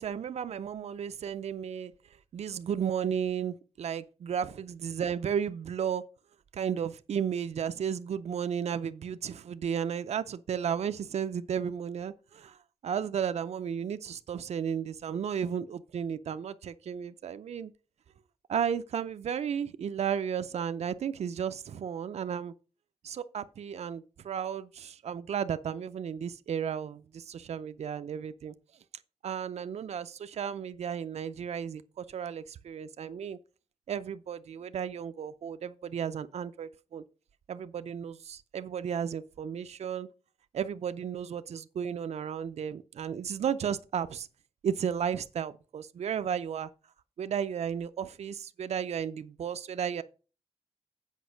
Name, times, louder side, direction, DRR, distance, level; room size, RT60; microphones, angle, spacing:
voice 1, 0.0-1.9 2.3-6.0 6.6-12.5 12.8-17.7 18.5-22.5 23.0-28.5 29.2-31.8 32.1-33.4 33.9-37.0 37.5-40.1 40.5-44.3 44.6-46.7 47.2-50.0, right 8 dB, 85° right, 0.4 m, -33 dB
8.2 x 5.0 x 6.2 m
wide cardioid pair, 80°, 11 cm